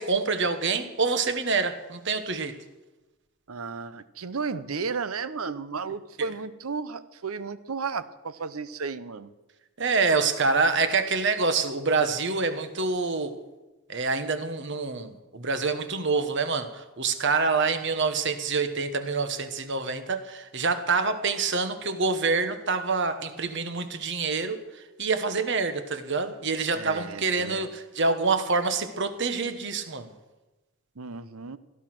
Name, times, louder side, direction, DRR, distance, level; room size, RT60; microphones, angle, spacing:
voice 1, 0.0-2.6 6.2-6.3 9.8-13.4 13.9-30.1, right 4 dB, 55° right, 9 dB, 1.3 m, -26 dB
voice 2, 3.5-9.3 26.7-27.7 31.0-31.6, right 5 dB, 80° right, 14 dB, 0.9 m, -34 dB
17.0 x 13.0 x 6.1 m, 1.1 s
head